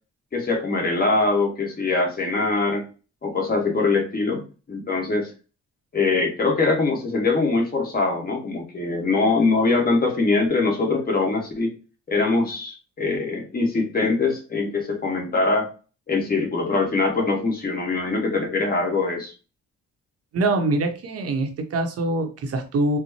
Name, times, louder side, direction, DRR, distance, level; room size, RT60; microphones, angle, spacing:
voice 1, 0.3-2.8 3.2-5.3 5.9-11.7 12.1-15.7 16.1-19.3, left 3 dB, 30° left, 1 dB, 1.3 m, -23 dB
voice 2, 20.3-23.0, right 2 dB, 50° right, 5 dB, 0.8 m, -24 dB
4.4 x 2.1 x 2.8 m, 0.34 s
cardioid pair, 90°, 30 cm